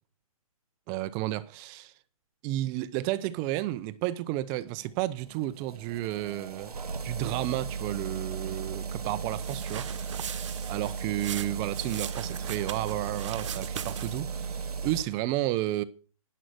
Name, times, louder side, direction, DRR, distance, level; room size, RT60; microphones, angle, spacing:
voice 1, 0.9-1.9 2.4-6.7 7.0-9.9 10.7-15.8, right 15 dB, 20° right, 0.6 m, -32 dB
sound 1, 4.7-15.0, right 6 dB, 90° right, 1.2 m, -36 dB
sound 2, 9.3-14.3, right 8 dB, 55° right, 1.2 m, -40 dB
11.0 x 10.0 x 6.2 m
hypercardioid pair, 150°, 19 cm